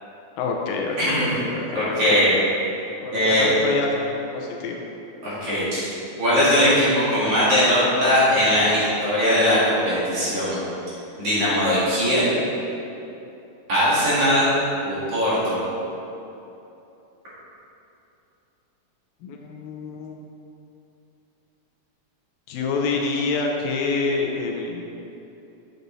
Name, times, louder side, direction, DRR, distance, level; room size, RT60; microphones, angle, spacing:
voice 1, 0.4-2.0 3.0-4.9 19.2-20.2 22.5-24.8, left 4 dB, 75° left, 1 dB, 2.2 m, -27 dB
voice 2, 1.7-2.3 3.1-3.5 5.2-5.9 6.2-10.6 11.2-12.2 13.7-14.5 14.8-15.6, equal, 45° right, -10 dB, 2.8 m, -20 dB
8.0 x 7.4 x 4.0 m, 2.8 s
omnidirectional pair, 4.3 m